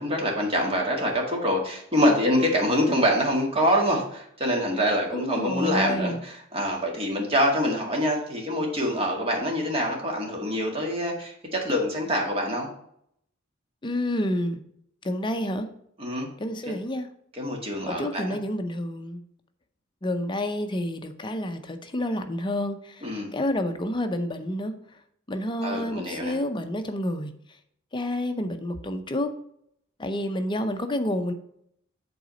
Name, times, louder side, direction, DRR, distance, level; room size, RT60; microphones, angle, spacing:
voice 1, 0.0-12.7 16.0-16.3 17.3-18.4 23.0-23.3 25.6-26.3, equal, 30° right, 0 dB, 1.9 m, -25 dB
voice 2, 5.1-6.2 13.8-14.6 15.0-15.7 16.4-17.1 18.0-19.2 20.0-25.0 25.3-27.3 27.9-29.3 30.0-31.3, left 1 dB, 25° left, 7 dB, 0.6 m, -29 dB
7.8 x 4.0 x 5.2 m, 0.70 s
head